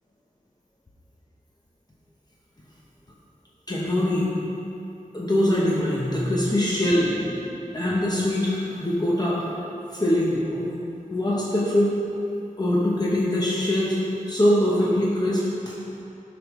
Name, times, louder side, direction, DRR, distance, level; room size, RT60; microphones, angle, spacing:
voice 1, 3.7-4.3 5.1-9.4 9.9-10.7 11.1-11.9 12.6-14.0 14.3-15.5, left 1 dB, 30° left, -6 dB, 0.9 m, -23 dB
9.2 x 5.2 x 3.1 m, 2.8 s
wide cardioid pair, 65°, 14 cm